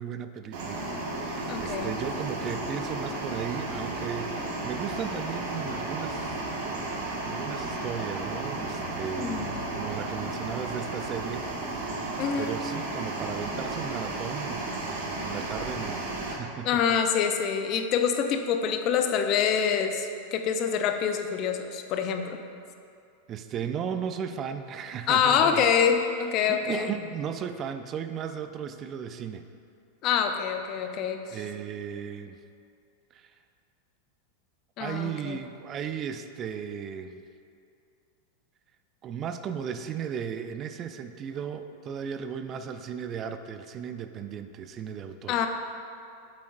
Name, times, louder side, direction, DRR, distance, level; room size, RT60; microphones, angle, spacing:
voice 1, 0.0-6.4 7.2-17.0 23.3-25.7 26.5-29.4 30.8-30.9 31.3-32.4 33.1-33.3 34.8-37.2 39.0-45.4, right 7 dB, 35° right, 9 dB, 0.4 m, -36 dB
sound 1, 0.5-16.3, right 2 dB, 65° right, 1.6 m, -33 dB
voice 2, 1.5-1.9 9.2-9.6 12.2-12.5 16.6-22.4 25.1-26.9 30.0-31.2 34.8-35.4 45.3-45.5, left 7 dB, 45° left, 6 dB, 0.6 m, -26 dB
8.4 x 7.4 x 2.6 m, 2.5 s
hypercardioid pair, 100°, 0 cm